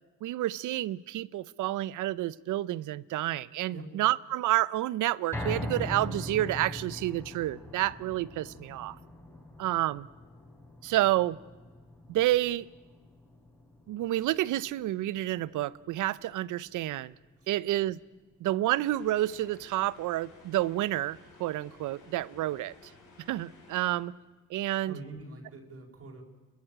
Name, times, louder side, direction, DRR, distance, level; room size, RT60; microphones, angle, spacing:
voice 1, 0.2-9.0 9.6-10.1 10.8-11.4 12.1-12.7 13.9-17.1 17.5-18.0 18.4-22.7 23.3-24.1 24.5-25.0, right 15 dB, 80° right, 20 dB, 0.7 m, -29 dB
sound 1, 5.3-17.6 18.0-18.1 18.5-18.6, left 1 dB, 10° left, 4.4 m, -42 dB
sound 2, 18.9-24.0, left 3 dB, 85° left, 6.5 m, -55 dB
voice 2, 24.8-26.2, right 3 dB, 50° right, 1 dB, 4.8 m, -44 dB
29.5 x 14.5 x 8.9 m, 1.3 s
cardioid pair, 90°, 30 cm